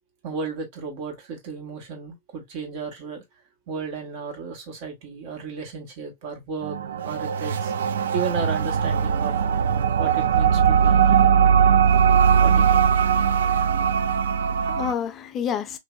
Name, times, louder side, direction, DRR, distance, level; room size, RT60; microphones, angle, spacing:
voice 1, 0.2-3.2 3.7-6.8 7.0-7.7 8.1-9.3 10.0-11.6 12.4-12.8, right 5 dB, 55° right, 1.4 m, -34 dB
sound 1, 6.6-14.9, right 7 dB, 80° right, 0.3 m, -20 dB
voice 2, 13.5-15.8, left 8 dB, 30° left, 0.5 m, -31 dB
3.2 x 2.6 x 2.4 m
hypercardioid pair, 115°, 0 cm